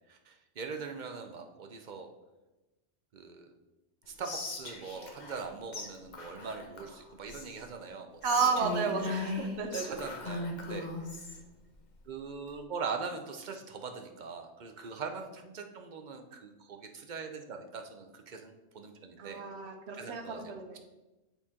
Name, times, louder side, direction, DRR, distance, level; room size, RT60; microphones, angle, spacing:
voice 1, 0.1-2.1 3.1-3.5 4.1-8.7 9.0-9.1 9.7-10.9 11.3-11.4 12.1-19.4 19.9-20.5, right 5 dB, 50° right, 5 dB, 0.7 m, -42 dB
Whispering, 4.2-5.5 5.7-5.9 6.1-7.7 8.2-11.4, left 2 dB, 40° left, 1.0 m, -38 dB
voice 2, 8.2-10.0 19.2-20.8, right 5 dB, 70° right, 5 dB, 1.0 m, -32 dB
7.1 x 4.3 x 3.6 m, 1.1 s
omnidirectional pair, 1.2 m